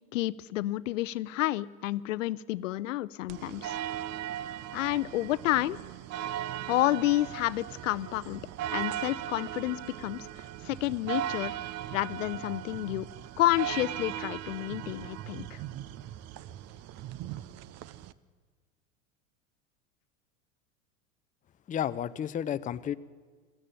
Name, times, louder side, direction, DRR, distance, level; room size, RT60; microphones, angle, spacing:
voice 1, 0.1-3.8 4.7-5.8 6.7-8.4 8.7-11.5 11.9-13.1 13.4-15.6, left 16 dB, 70° left, 18 dB, 0.6 m, -30 dB
sound 1, 3.3-18.1, right 12 dB, 40° right, 0.8 m, -38 dB
voice 2, 21.7-23.0, left 9 dB, 20° left, 12 dB, 0.6 m, -32 dB
21.5 x 14.5 x 9.0 m, 1.5 s
hypercardioid pair, 90°, 40 cm